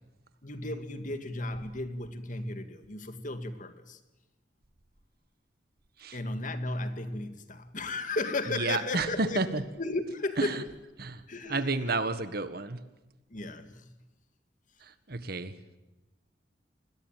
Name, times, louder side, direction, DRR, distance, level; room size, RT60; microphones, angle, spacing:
voice 1, 0.4-4.0 6.1-10.6 11.3-11.9 13.3-13.9, left 2 dB, 45° left, 9 dB, 2.2 m, -35 dB
voice 2, 8.5-9.6 10.4-10.6 11.0-12.8 14.8-15.5, right 3 dB, 55° right, 12 dB, 1.6 m, -31 dB
28.5 x 21.0 x 9.2 m, 1.1 s
head